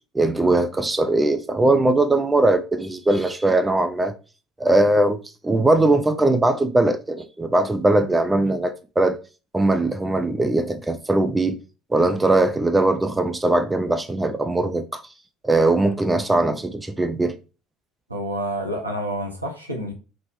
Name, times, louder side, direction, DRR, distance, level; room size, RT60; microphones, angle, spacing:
voice 1, 0.1-4.1 4.6-5.2 5.4-9.2 9.5-11.6 11.9-15.0 15.4-17.4, right 2 dB, 15° right, 0.3 m, -20 dB
voice 2, 18.1-19.9, right 1 dB, 85° right, 0.5 m, -28 dB
2.9 x 2.0 x 3.2 m
figure-of-eight pair, 60°, 0 cm